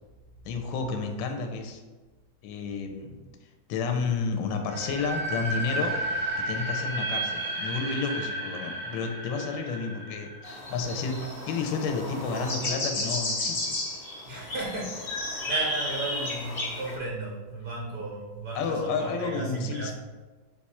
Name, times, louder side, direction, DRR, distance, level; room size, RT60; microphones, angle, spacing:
voice 1, 0.4-1.8 2.4-3.2 3.7-5.9 6.5-11.2 11.5-13.8 18.5-19.9, left 4 dB, 75° left, 4 dB, 1.3 m, -31 dB
sound 1, 4.6-11.5, right 1 dB, 30° right, 0.5 m, -33 dB
sound 2, 10.4-17.0, left 1 dB, 50° left, 0.7 m, -33 dB
voice 2, 14.3-19.9, right 2 dB, 90° right, -4 dB, 0.4 m, -35 dB
4.6 x 2.3 x 4.2 m, 1.3 s
omnidirectional pair, 2.2 m